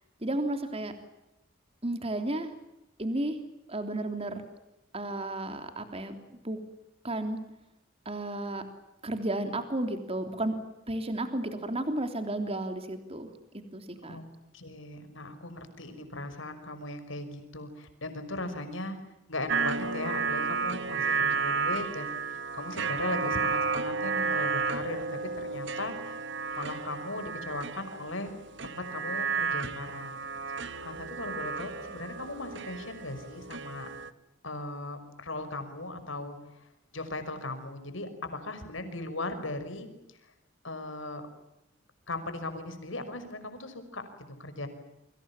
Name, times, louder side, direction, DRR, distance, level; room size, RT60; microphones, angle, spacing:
voice 1, 0.2-0.9 1.8-2.5 3.0-3.4 3.7-4.4 4.9-6.2 6.4-6.6 7.0-7.4 8.0-8.6 9.0-10.5 10.9-13.3 13.5-14.2, right 1 dB, 30° right, 7 dB, 3.3 m, -32 dB
voice 2, 14.5-19.0 19.3-26.2 26.5-28.3 28.6-33.9 34.4-40.2 40.6-41.2 42.1-44.1 44.4-44.7, left 2 dB, 70° left, 9 dB, 5.8 m, -38 dB
sound 1, 19.5-34.1, right 4 dB, 60° right, 1.6 m, -32 dB
29.5 x 25.5 x 7.3 m, 0.89 s
head